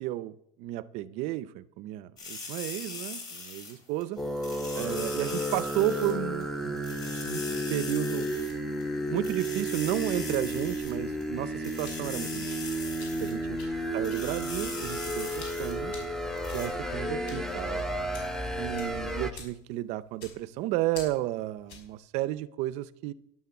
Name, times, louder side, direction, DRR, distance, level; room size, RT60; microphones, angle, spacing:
voice 1, 0.0-4.2 4.8-8.3 9.1-12.5 13.2-13.6 13.9-15.9 16.5-17.9 18.6-23.1, right 15 dB, 50° right, 0.6 m, -33 dB
sound 1, 2.2-4.0 4.4-6.1 6.4-6.5 6.8-8.5 8.8-8.9 9.2-11.2 11.6-13.3 13.6-13.7 14.0-15.7 16.0-16.1 16.4-16.7, left 4 dB, 25° left, 3.5 m, -41 dB
sound 2, 4.2-19.3, equal, 5° left, 0.7 m, -32 dB
sound 3, 11.8-22.0, left 5 dB, 75° left, 5.2 m, -50 dB
11.0 x 9.4 x 7.2 m
cardioid pair, 175°, 15 cm